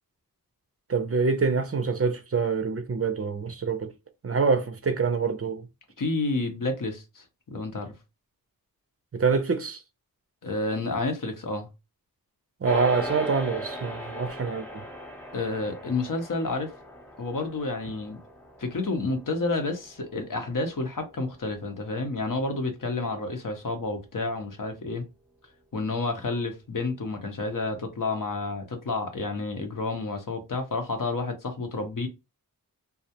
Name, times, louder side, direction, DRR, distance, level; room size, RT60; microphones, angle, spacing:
voice 1, 0.9-3.9 4.2-5.7 9.1-9.8 12.6-14.8, right 5 dB, 40° right, 0.5 m, -26 dB
voice 2, 6.0-7.9 10.4-11.7 15.3-16.7 17.2-18.2 18.6-25.0 25.7-32.1, left 3 dB, 60° left, 0.7 m, -30 dB
sound 1, 12.6-22.2, equal, 5° left, 0.7 m, -39 dB
2.3 x 2.0 x 2.7 m
cardioid pair, 40°, 37 cm